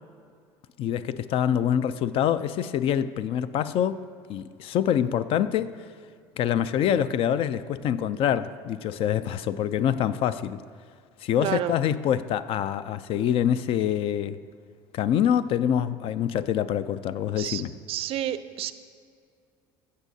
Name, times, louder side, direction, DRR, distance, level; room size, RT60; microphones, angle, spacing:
voice 1, 0.8-4.0 4.3-5.8 6.4-10.6 11.2-14.4 14.9-17.7, left 9 dB, 55° left, 0.4 m, -25 dB
voice 2, 11.4-11.8 17.4-17.6 17.9-18.7, right 12 dB, 55° right, 0.4 m, -30 dB
14.5 x 6.3 x 2.7 m
supercardioid pair, 90°, 11 cm